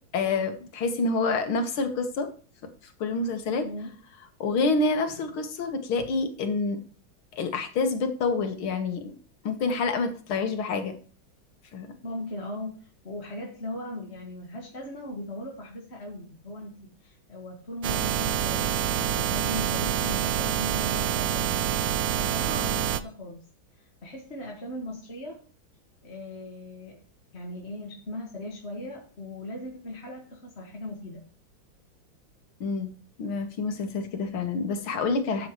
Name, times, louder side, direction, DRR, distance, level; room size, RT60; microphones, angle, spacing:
voice 1, 0.1-2.3 3.0-3.7 4.4-6.8 7.3-9.1 9.4-11.0 11.7-11.9 32.6-32.9 33.2-35.5, left 3 dB, 90° left, 7 dB, 2.3 m, -27 dB
voice 2, 12.0-21.8 22.2-23.5 23.8-25.4 26.0-27.0 27.3-31.2, left 1 dB, 35° left, -1 dB, 1.8 m, -39 dB
sound 1, 17.8-23.0, right 10 dB, 75° right, 0.8 m, -26 dB
12.5 x 8.3 x 3.1 m, 0.40 s
omnidirectional pair, 2.2 m